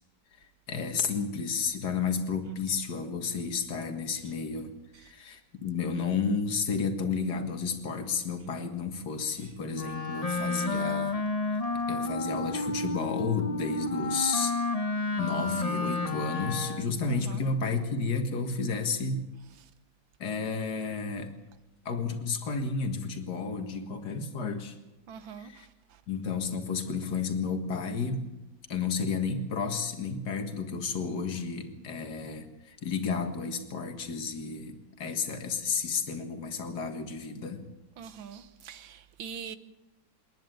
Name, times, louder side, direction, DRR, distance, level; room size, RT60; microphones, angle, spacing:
voice 1, 0.7-11.2 11.5-11.6 11.9-14.6 15.2-19.2 20.2-21.3 21.9-24.8 25.4-25.7 26.1-28.3 28.7-37.6, left 5 dB, 60° left, 2.3 m, -32 dB
Wind instrument woodwind instrument, 9.7-17.0, left 2 dB, 30° left, 0.6 m, -31 dB
voice 2, 17.1-17.4 25.1-25.5 38.0-39.6, right 7 dB, 85° right, 1.8 m, -43 dB
28.0 x 10.5 x 9.3 m
omnidirectional pair, 2.1 m